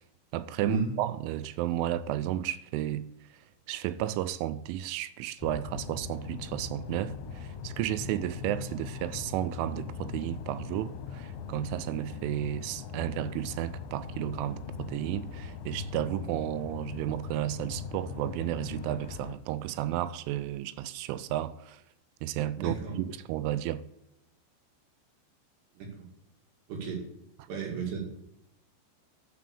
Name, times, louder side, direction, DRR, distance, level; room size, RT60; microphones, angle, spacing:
voice 1, 0.3-3.1 3.7-21.8 22.2-23.8 27.4-27.5, right 13 dB, 85° right, 2.9 m, -33 dB
sound 1, 5.4-19.4, left 6 dB, 75° left, 3.1 m, -40 dB
voice 2, 22.6-23.0 25.7-26.1 26.7-27.1 27.5-28.0, right 4 dB, 65° right, 4.0 m, -33 dB
12.5 x 5.8 x 7.0 m
omnidirectional pair, 5.8 m